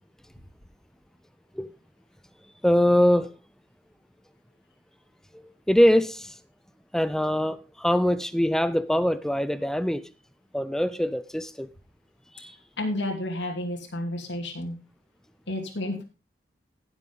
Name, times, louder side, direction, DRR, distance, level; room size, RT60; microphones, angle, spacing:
voice 1, 2.6-3.3 5.7-6.3 6.9-10.0 10.5-11.7 12.4-12.5, equal, 5° left, 0.5 m, -23 dB
voice 2, 12.8-14.7 15.5-16.0, left 1 dB, 90° left, 2.6 m, -31 dB
16.5 x 7.1 x 3.9 m
head